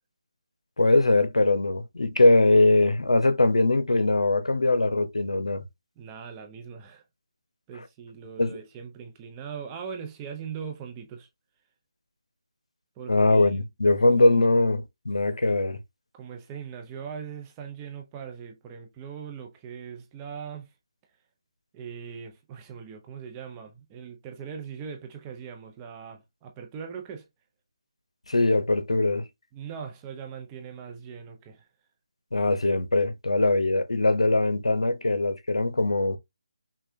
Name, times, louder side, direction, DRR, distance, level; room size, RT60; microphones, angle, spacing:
voice 1, 0.8-5.6 8.4-8.6 13.1-15.8 28.3-29.2 32.3-36.2, left 2 dB, 85° left, 0.8 m, -21 dB
voice 2, 6.0-7.0 7.7-11.3 13.0-13.5 14.1-14.4 16.1-20.7 21.7-27.3 29.5-31.7, right 7 dB, 15° right, 0.7 m, -40 dB
5.8 x 2.4 x 2.7 m
figure-of-eight pair, 160°, 3 cm